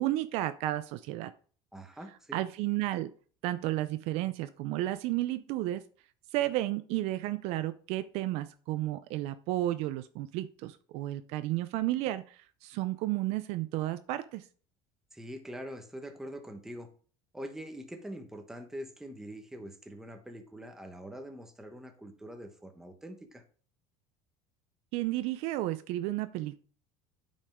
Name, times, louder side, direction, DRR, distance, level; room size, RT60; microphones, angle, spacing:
voice 1, 0.0-1.3 2.3-3.1 3.4-5.8 6.3-14.4 24.9-26.6, right 15 dB, 60° right, 13 dB, 0.4 m, -32 dB
voice 2, 1.7-2.4 15.1-16.9 17.3-23.4, equal, 5° right, 6 dB, 1.0 m, -44 dB
8.6 x 5.4 x 3.5 m, 0.42 s
cardioid pair, 145°, 12 cm